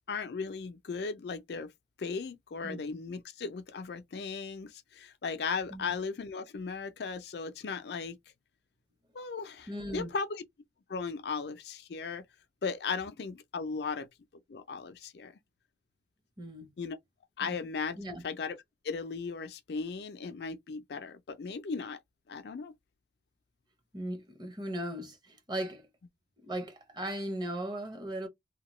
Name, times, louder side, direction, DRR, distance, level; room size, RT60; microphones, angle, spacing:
voice 1, 0.1-1.7 2.0-8.2 9.1-10.4 10.9-12.3 12.6-14.1 14.5-15.3 16.8-17.0 17.4-18.0 18.2-18.6 18.8-22.0 22.3-22.7, left 5 dB, 65° left, 0.4 m, -37 dB
voice 2, 9.7-10.1 16.4-16.7 17.4-17.6 18.0-18.2 23.9-25.2 25.5-25.8 26.5-28.3, right 1 dB, 25° right, 0.7 m, -37 dB
2.8 x 2.2 x 3.0 m
head